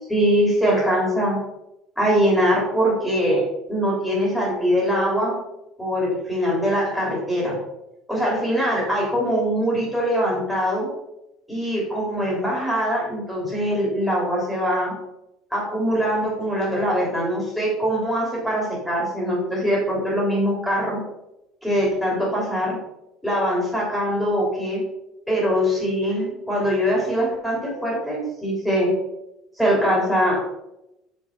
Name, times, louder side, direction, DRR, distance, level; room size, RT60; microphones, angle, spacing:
voice 1, 0.1-1.4 2.0-3.4 3.7-5.4 5.8-7.6 8.1-10.9 11.5-15.0 15.5-21.0 21.6-22.8 23.2-24.8 25.3-28.9 29.6-30.4, equal, ahead, -4 dB, 3.2 m, -22 dB
6.3 x 5.5 x 5.4 m, 0.87 s
cardioid pair, 150°, 0 cm